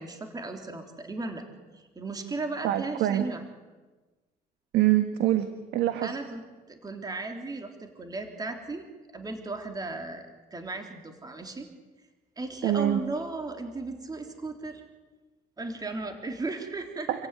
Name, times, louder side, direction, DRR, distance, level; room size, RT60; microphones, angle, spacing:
voice 1, 0.0-1.5 1.7-3.4 6.0-6.4 6.7-8.9 9.1-11.7 12.4-14.8 15.6-17.3, right 3 dB, 20° right, 4 dB, 3.5 m, -36 dB
voice 2, 2.6-3.3 4.7-6.2 12.6-13.0 17.1-17.3, right 13 dB, 80° right, 9 dB, 1.5 m, -25 dB
28.5 x 15.5 x 9.9 m, 1.2 s
cardioid pair, 110°, 17 cm